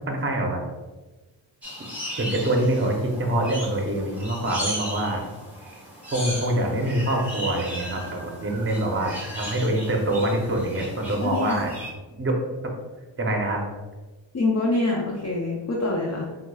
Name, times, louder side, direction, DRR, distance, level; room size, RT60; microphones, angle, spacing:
voice 1, 0.1-0.6 2.2-5.3 6.1-11.7 12.2-12.4 13.2-13.7, right 1 dB, 25° right, 1 dB, 0.7 m, -25 dB
sound 1, 1.6-11.9, equal, 5° right, 1.0 m, -36 dB
voice 2, 11.2-11.6 14.3-16.2, left 2 dB, 35° left, -2 dB, 0.5 m, -25 dB
4.6 x 2.3 x 2.3 m, 1.2 s
cardioid pair, 55°, 48 cm